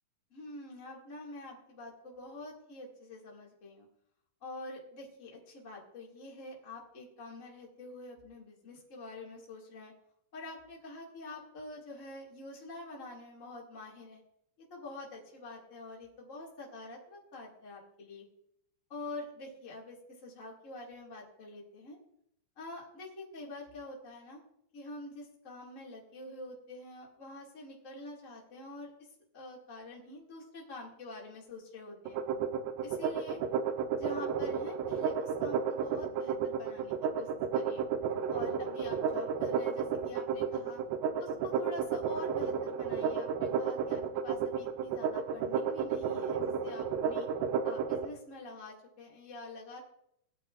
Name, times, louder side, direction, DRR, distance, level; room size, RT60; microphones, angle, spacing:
voice 1, 0.3-3.9 4.4-9.9 10.3-14.2 14.7-18.3 18.9-22.0 22.5-24.4 24.7-28.9 29.3-32.2 32.8-33.4 34.0-37.3 37.5-37.8 38.3-40.8 41.2-47.3 47.6-49.8, left 2 dB, 75° left, -3 dB, 0.7 m, -46 dB
sound 1, 32.1-48.1, right 7 dB, 80° right, 2.7 m, -32 dB
20.0 x 9.0 x 2.4 m, 0.74 s
omnidirectional pair, 5.2 m